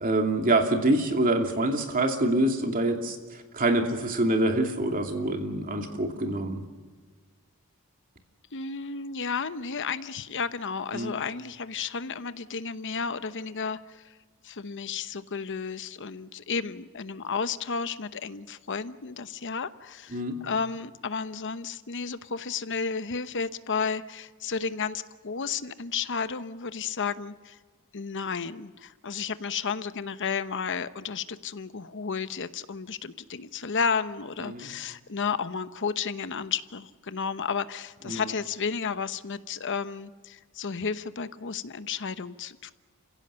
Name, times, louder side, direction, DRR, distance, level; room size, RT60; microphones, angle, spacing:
voice 1, 0.0-6.6 10.9-11.1 20.1-20.4 34.4-34.7 38.0-38.2, right 1 dB, 40° right, 3 dB, 2.7 m, -26 dB
voice 2, 8.5-14.1 14.4-27.6 27.9-42.7, left 5 dB, 55° left, 13 dB, 0.9 m, -32 dB
29.5 x 16.5 x 6.9 m, 1.5 s
head